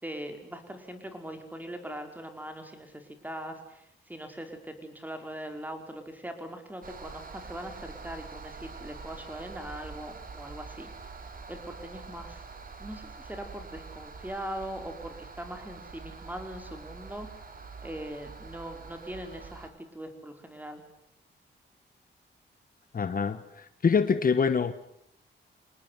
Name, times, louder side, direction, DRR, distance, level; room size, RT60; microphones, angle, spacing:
voice 1, 0.0-10.9 11.5-12.4 12.8-17.3 17.8-20.8, right 1 dB, 10° right, 5.1 m, -41 dB
sound 1, 6.8-19.7, right 4 dB, 45° right, 3.5 m, -45 dB
voice 2, 22.9-24.7, left 5 dB, 45° left, 1.3 m, -25 dB
27.0 x 19.5 x 9.6 m
cardioid pair, 90°, 20 cm